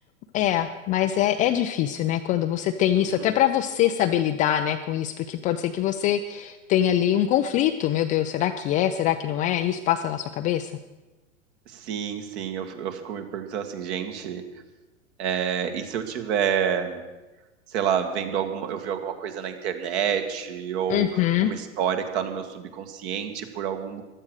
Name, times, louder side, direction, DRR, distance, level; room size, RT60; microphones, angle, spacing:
voice 1, 0.3-10.7 20.9-21.5, left 11 dB, 20° left, 7 dB, 0.4 m, -23 dB
voice 2, 3.0-3.3 11.7-14.4 15.2-17.0 17.7-24.0, right 8 dB, 50° right, 6 dB, 2.2 m, -29 dB
15.0 x 12.0 x 6.5 m, 1.1 s
hypercardioid pair, 105°, 41 cm